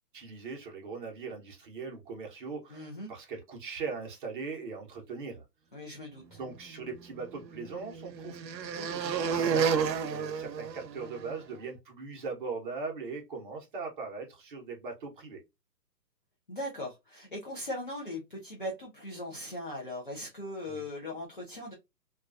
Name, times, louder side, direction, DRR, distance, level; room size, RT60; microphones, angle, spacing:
voice 1, 0.1-5.4 6.3-15.4 20.7-20.9, right 4 dB, 30° right, 0.7 m, -40 dB
voice 2, 2.7-3.1 5.7-6.4 16.5-21.7, left 1 dB, 35° left, 0.4 m, -39 dB
sound 1, 6.7-11.4, right 6 dB, 85° right, 0.6 m, -32 dB
2.3 x 2.2 x 2.4 m
hypercardioid pair, 145°, 49 cm